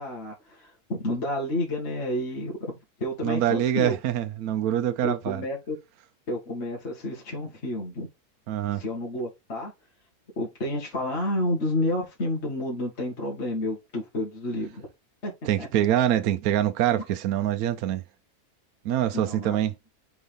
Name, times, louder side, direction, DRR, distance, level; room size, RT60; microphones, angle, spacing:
voice 1, 0.0-4.0 5.0-5.8 6.3-8.1 8.7-9.7 10.4-14.9 15.2-15.3 15.6-15.7 19.1-19.6, left 1 dB, 45° left, 2.2 m, -30 dB
voice 2, 3.2-5.4 8.5-8.8 15.4-18.0 18.8-19.7, right 11 dB, 75° right, 1.1 m, -25 dB
4.6 x 4.1 x 5.1 m
omnidirectional pair, 1.6 m